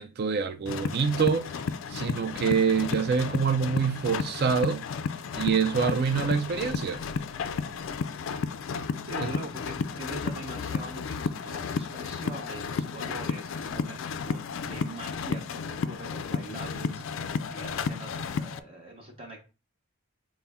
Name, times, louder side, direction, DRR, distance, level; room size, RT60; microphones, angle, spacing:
voice 1, 0.0-1.5 1.9-4.8 5.3-7.0 9.2-9.3, right 6 dB, 45° right, 0.3 m, -26 dB
sound 1, 0.7-18.6, left 5 dB, 60° left, 0.3 m, -33 dB
voice 2, 9.0-19.4, right 1 dB, 25° right, 0.7 m, -42 dB
5.4 x 2.1 x 3.5 m
head